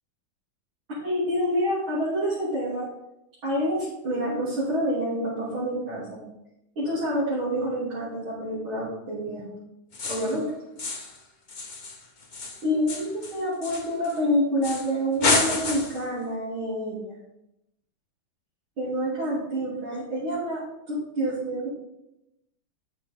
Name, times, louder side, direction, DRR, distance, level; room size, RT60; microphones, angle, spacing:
voice 1, 1.0-2.9 3.4-6.2 6.8-9.6 10.1-10.5 12.6-17.2 18.8-21.7, equal, 70° right, -10 dB, 4.1 m, -27 dB
sound 1, 9.9-10.4 10.8-11.2 11.5-14.2 14.6-14.9 15.2-16.1, left 3 dB, 40° left, 0.6 m, -29 dB
9.4 x 6.6 x 3.7 m, 0.85 s
omnidirectional pair, 2.4 m